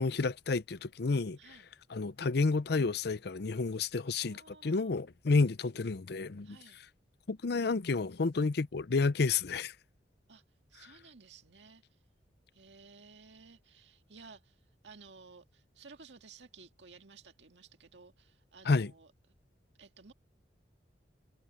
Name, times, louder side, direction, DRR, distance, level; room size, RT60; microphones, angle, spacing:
voice 1, 0.0-1.6 1.9-6.6 7.3-9.7 18.6-18.9, left 4 dB, 65° left, 0.6 m, -30 dB
voice 2, 4.2-4.9 6.4-6.8 10.3-10.4 10.7-11.8 12.5-14.6 14.8-19.1 19.8-20.1, right 4 dB, 85° right, 1.9 m, -55 dB
head